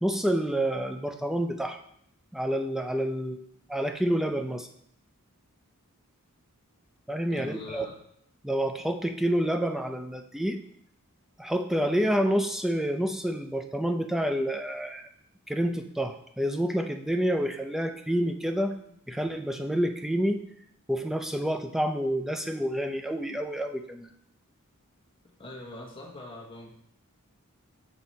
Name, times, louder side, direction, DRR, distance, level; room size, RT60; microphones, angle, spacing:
voice 1, 0.0-1.8 2.3-3.4 3.7-4.7 7.1-7.9 8.4-10.6 11.4-15.1 15.5-18.7 19.1-20.4 20.9-24.1, equal, ahead, 5 dB, 0.4 m, -28 dB
voice 2, 7.3-8.0 25.4-26.7, left 2 dB, 25° left, -2 dB, 1.3 m, -42 dB
7.4 x 3.9 x 4.2 m, 0.70 s
head